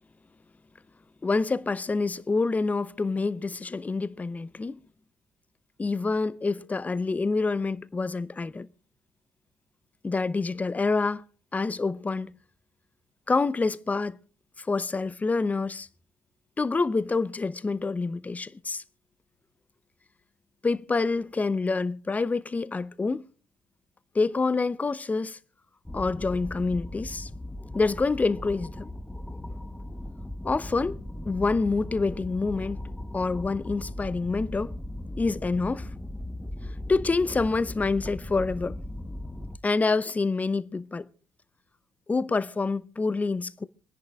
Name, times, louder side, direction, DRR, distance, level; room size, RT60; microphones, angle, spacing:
voice 1, 1.2-4.8 5.8-8.7 10.0-11.2 11.5-12.3 13.3-14.2 14.6-15.9 16.6-18.8 20.6-23.2 24.1-25.4 25.9-27.3 27.7-28.9 30.4-31.0 31.3-32.8 33.1-34.8 35.2-35.9 36.9-38.7 39.6-41.1 42.1-43.6, left 3 dB, 25° left, 0.7 m, -27 dB
sound 1, 25.8-39.6, left 1 dB, 10° left, 1.1 m, -38 dB
27.0 x 10.5 x 2.4 m
hypercardioid pair, 50°, 6 cm